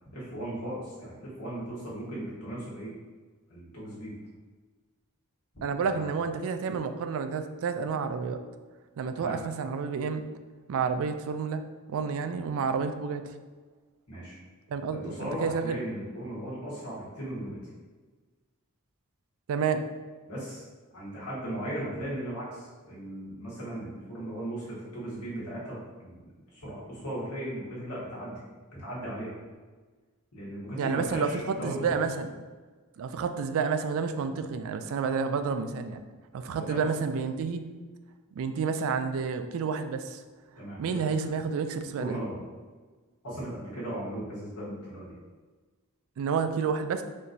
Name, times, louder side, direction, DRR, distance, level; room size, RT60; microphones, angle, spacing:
voice 1, 0.0-2.9 3.5-4.1 5.5-6.1 9.1-9.4 14.1-14.4 15.0-17.6 20.2-20.6 20.9-28.4 28.8-29.4 30.3-32.0 36.5-36.8 40.6-41.0 42.0-42.4 43.2-45.2, right 1 dB, 90° left, -7 dB, 1.5 m, -37 dB
voice 2, 5.6-8.4 9.0-10.2 10.7-11.6 11.9-13.2 14.7-15.1 15.4-15.8 19.5-19.8 30.8-32.3 33.0-36.0 36.3-37.7 38.4-40.2 40.8-42.2 46.2-47.0, right 5 dB, 65° right, 8 dB, 0.3 m, -30 dB
4.2 x 3.0 x 2.6 m, 1.4 s
head